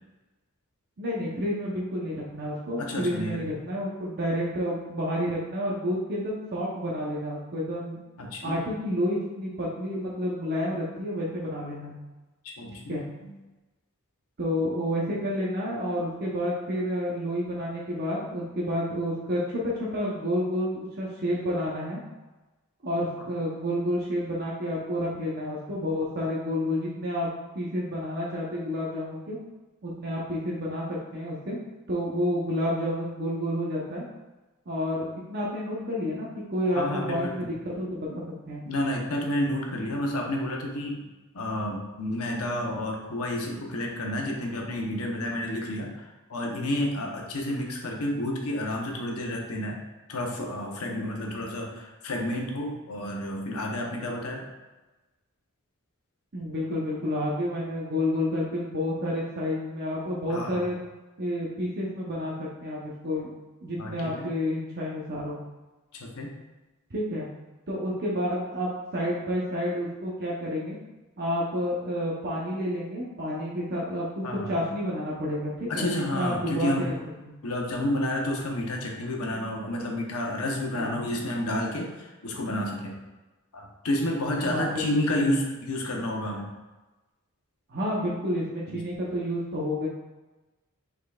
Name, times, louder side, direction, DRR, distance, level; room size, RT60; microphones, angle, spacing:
voice 1, 1.0-8.0 8.4-11.9 12.9-13.0 14.4-22.0 22.8-27.3 27.5-29.4 29.8-31.6 31.9-34.1 34.7-38.6 56.3-60.8 61.2-63.3 63.6-65.4 66.9-67.3 67.7-70.8 71.2-76.9 77.3-77.4 80.7-81.0 84.4-85.0 87.7-89.9, equal, 50° right, -5 dB, 0.8 m, -30 dB
voice 2, 2.8-3.4 8.2-8.6 12.4-13.3 36.7-37.5 38.7-41.1 41.3-49.8 50.1-54.4 60.3-60.7 63.8-64.3 65.9-66.3 74.2-74.6 75.7-76.9 77.4-83.0 83.5-86.5 88.7-88.8, left 1 dB, 75° left, 0 dB, 0.8 m, -30 dB
5.3 x 3.9 x 2.3 m, 1.1 s
head